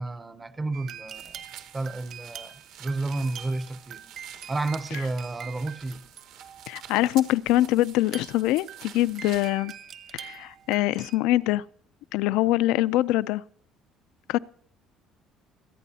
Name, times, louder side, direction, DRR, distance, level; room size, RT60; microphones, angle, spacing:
voice 1, 0.0-1.4 1.7-2.5 2.8-4.0 4.5-6.0, right 2 dB, 15° right, 0.6 m, -31 dB
sound 1, 0.7-7.0 8.0-11.2, right 8 dB, 45° right, 1.0 m, -44 dB
sound 2, 1.1-9.6, right 10 dB, 75° right, 1.4 m, -48 dB
voice 2, 6.7-9.7 10.1-11.6 12.1-13.4 14.3-14.4, left 15 dB, 85° left, 0.4 m, -24 dB
25.0 x 9.1 x 2.8 m
cardioid pair, 150°, 0 cm